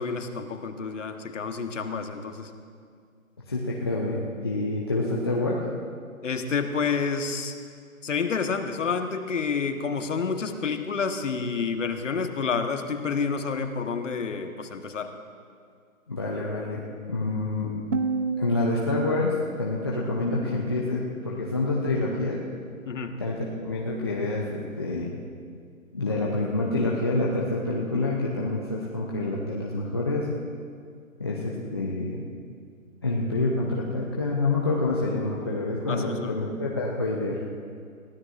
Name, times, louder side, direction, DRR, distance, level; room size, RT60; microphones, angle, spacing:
voice 1, 0.0-2.5 6.2-7.5 8.0-15.1 22.8-23.2 35.9-36.3, left 5 dB, 60° left, 7 dB, 1.2 m, -29 dB
voice 2, 3.5-5.6 16.1-17.7 18.4-22.4 23.2-25.1 25.9-30.3 31.2-32.2 33.0-37.4, left 2 dB, 20° left, -4 dB, 0.6 m, -27 dB
sound 1, 17.9-20.9, right 4 dB, 60° right, 0.9 m, -32 dB
21.5 x 16.0 x 2.5 m, 2.2 s
figure-of-eight pair, 155°, 42 cm